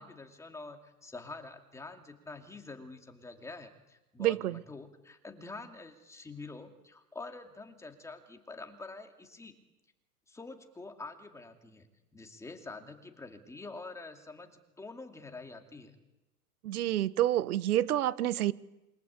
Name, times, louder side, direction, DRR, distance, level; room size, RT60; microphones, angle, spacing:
voice 1, 0.0-9.5 10.3-11.9 12.1-16.0, left 3 dB, 5° left, 5 dB, 2.5 m, -46 dB
voice 2, 4.2-4.6 16.6-18.5, right 13 dB, 65° right, 17 dB, 1.4 m, -28 dB
28.5 x 23.5 x 8.3 m, 0.97 s
hypercardioid pair, 145°, 48 cm